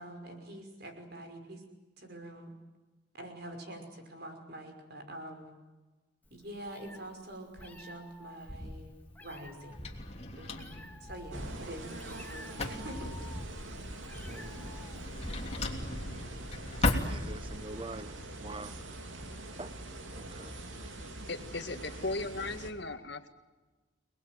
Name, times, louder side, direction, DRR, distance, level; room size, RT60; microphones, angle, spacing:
voice 1, 0.0-1.6 2.0-2.5 3.2-5.5 6.3-8.9 9.2-10.0 10.3-13.1, right 1 dB, 55° right, 5 dB, 5.7 m, -46 dB
Meow, 6.3-15.6, equal, 10° left, 2.0 m, -47 dB
Drawer open or close, 8.4-17.8, left 2 dB, 30° left, 3.1 m, -38 dB
sound 1, 11.3-22.7, right 1 dB, 80° right, 3.2 m, -44 dB
voice 2, 17.1-18.8 19.6-19.7 20.1-20.6, right 2 dB, 25° right, 14 dB, 1.0 m, -44 dB
voice 3, 21.3-23.3, left 2 dB, 60° left, 8 dB, 2.0 m, -37 dB
29.0 x 20.0 x 9.4 m, 1.2 s
head